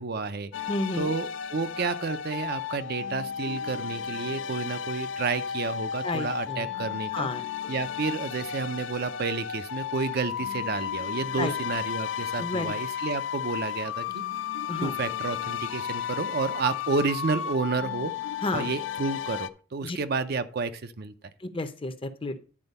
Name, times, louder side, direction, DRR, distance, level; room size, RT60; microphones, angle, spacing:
voice 1, 0.0-0.5 0.9-7.3 7.7-14.2 14.8-18.1 18.5-21.1, right 4 dB, 50° right, 0.5 m, -30 dB
sound 1, 0.5-19.5, left 8 dB, 65° left, 0.4 m, -33 dB
voice 2, 0.7-1.1 6.0-6.7 7.1-7.4 11.4-11.5 12.4-12.7 14.7-14.9 18.4-18.7 19.8-20.0 21.4-22.4, left 2 dB, 25° left, 0.7 m, -31 dB
9.8 x 4.4 x 5.4 m
head